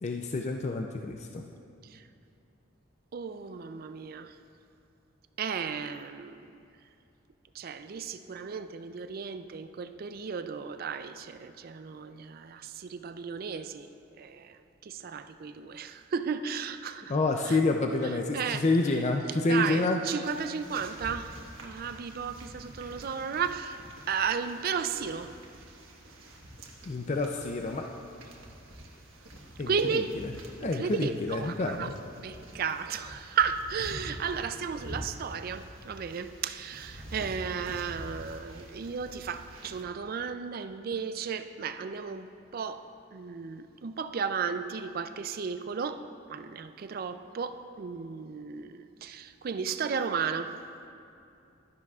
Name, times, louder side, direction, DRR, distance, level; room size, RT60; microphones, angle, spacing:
voice 1, 0.0-1.4 17.1-20.0 26.8-27.9 29.6-30.0 30.6-31.9, left 2 dB, 35° left, 3 dB, 0.4 m, -28 dB
voice 2, 3.1-4.4 5.4-6.5 7.5-13.9 14.2-17.1 17.4-17.6 18.3-18.6 19.3-25.4 29.7-30.2 30.6-31.9 32.2-42.8 43.1-50.6, right 6 dB, 45° right, 10 dB, 0.4 m, -34 dB
sound 1, 20.2-39.8, right 1 dB, 85° right, 1.3 m, -47 dB
12.5 x 10.5 x 2.4 m, 2.6 s
head